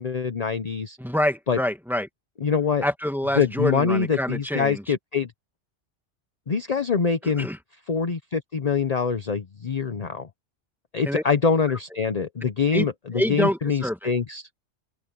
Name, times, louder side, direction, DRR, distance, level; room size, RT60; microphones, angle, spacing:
voice 1, 0.0-1.0 1.5-1.6 2.4-2.8 3.4-5.3 6.5-7.5 7.9-10.3 10.9-14.5, left 5 dB, 40° left, 0.9 m, -24 dB
voice 2, 1.0-2.1 2.8-4.8 7.4-7.6 11.1-11.2 12.7-14.1, left 1 dB, ahead, 1.8 m, -26 dB
open air
omnidirectional pair, 1.2 m